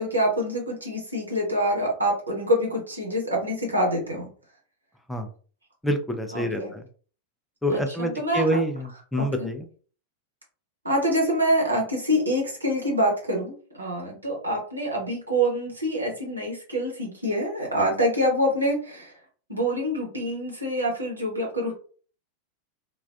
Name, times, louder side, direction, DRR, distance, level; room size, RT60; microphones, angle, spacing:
voice 1, 0.0-4.3 6.3-6.7 7.7-8.4 9.1-9.5 10.8-19.1 19.5-21.8, equal, 80° right, -1 dB, 1.0 m, -26 dB
voice 2, 5.8-6.8 7.6-9.7, equal, 5° left, 5 dB, 0.4 m, -27 dB
2.3 x 2.2 x 2.4 m, 0.42 s
figure-of-eight pair, 90°, 0 cm